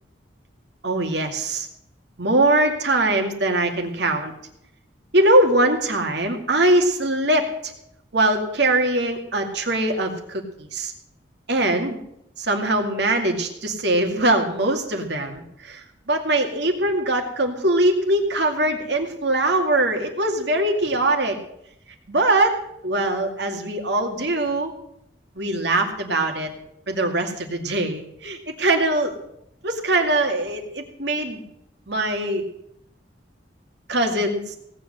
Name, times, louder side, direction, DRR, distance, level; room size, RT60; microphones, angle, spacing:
voice 1, 0.8-1.7 2.2-4.3 5.1-7.7 8.1-10.4 10.7-10.9 11.5-12.0 12.4-21.4 22.1-22.6 22.8-24.7 25.4-26.5 26.9-29.2 29.6-31.4 31.9-32.4 33.9-34.6, right 1 dB, 60° right, 4 dB, 2.3 m, -22 dB
17.5 x 7.9 x 7.7 m, 0.75 s
head